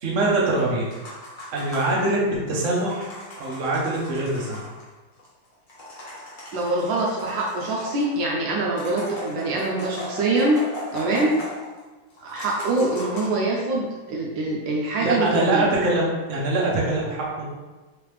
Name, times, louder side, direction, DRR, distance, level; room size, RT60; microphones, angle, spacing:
voice 1, 0.0-0.9 1.5-3.1 3.4-4.6 15.0-17.4, right 2 dB, 50° right, -4 dB, 0.9 m, -23 dB
sound 1, 0.8-2.1 2.5-4.8 5.2-5.3 5.5-8.2 8.7-11.8 12.1-13.3, left 1 dB, 40° left, 0.7 m, -38 dB
voice 2, 6.5-10.6 10.9-11.4 12.2-15.7, right 2 dB, 75° right, -2 dB, 1.3 m, -24 dB
3.7 x 3.3 x 3.2 m, 1.2 s
omnidirectional pair, 2.2 m